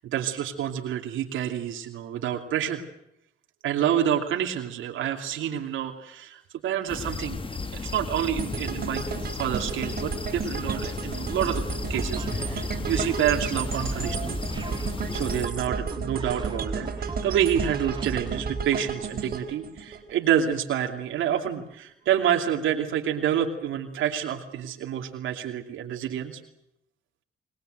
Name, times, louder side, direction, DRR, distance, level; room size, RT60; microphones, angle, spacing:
voice 1, 0.1-2.8 3.6-7.4 7.7-11.6 11.9-14.4 15.1-26.4, right 9 dB, 80° right, 3 dB, 2.7 m, -28 dB
sound 1, 6.9-15.5, left 4 dB, 25° left, 1.2 m, -34 dB
sound 2, 8.4-20.6 21.0-21.1, right 5 dB, 50° right, 3.9 m, -34 dB
sound 3, 11.5-18.9, right 3 dB, 25° right, 2.2 m, -35 dB
26.5 x 20.5 x 7.9 m, 0.80 s
cardioid pair, 90°, 20 cm